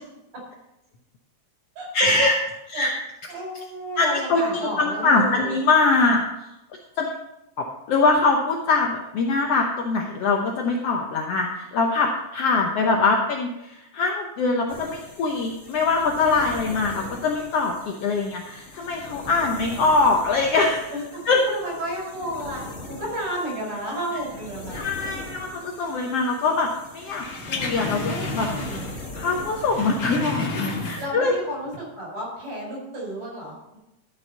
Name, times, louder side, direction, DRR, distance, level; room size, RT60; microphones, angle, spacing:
voice 1, 1.9-2.3 2.7-2.9 4.0-6.2 7.0-7.1 7.9-20.9 21.3-21.4 24.7-26.7 26.9-28.5 29.2-31.4, left 3 dB, 65° left, 1 dB, 1.7 m, -23 dB
voice 2, 3.3-5.6 20.9-21.2 21.5-22.6 22.9-24.8 28.0-28.9 31.0-33.8, equal, 60° right, -3 dB, 6.1 m, -32 dB
sound 1, 14.7-30.4, left 2 dB, 25° left, 2.4 m, -40 dB
sound 2, 27.1-29.0 29.3-31.3 31.7-31.8, left 3 dB, 85° left, 0.7 m, -31 dB
12.5 x 6.2 x 5.5 m, 0.91 s
omnidirectional pair, 3.4 m